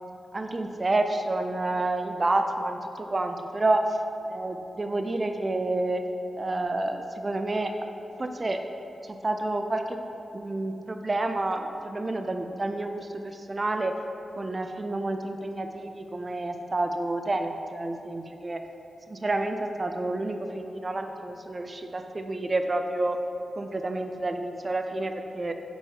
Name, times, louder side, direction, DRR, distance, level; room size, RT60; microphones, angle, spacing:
voice 1, 0.3-3.8 4.3-6.0 6.4-7.7 8.2-8.6 9.1-10.0 10.3-14.0 14.4-18.6 19.1-23.2 23.6-25.5, right 2 dB, 30° right, 6 dB, 0.4 m, -29 dB
5.4 x 4.6 x 4.6 m, 2.9 s
wide cardioid pair, 100°, 0 cm